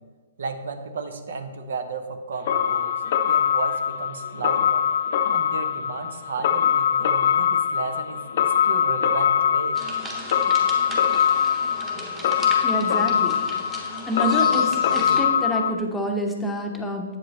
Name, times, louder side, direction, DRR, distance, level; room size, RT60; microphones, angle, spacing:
voice 1, 0.4-2.9 3.3-4.8 5.3-9.8, right 4 dB, 75° right, 8 dB, 0.8 m, -33 dB
sound 1, 2.5-15.7, left 8 dB, 55° left, 0.5 m, -22 dB
sound 2, 9.7-15.2, right 1 dB, 10° right, 1.2 m, -37 dB
voice 2, 12.6-13.3 14.1-17.0, equal, 5° left, 1 dB, 0.8 m, -27 dB
7.8 x 7.6 x 3.2 m, 1.4 s
hypercardioid pair, 150°, 0 cm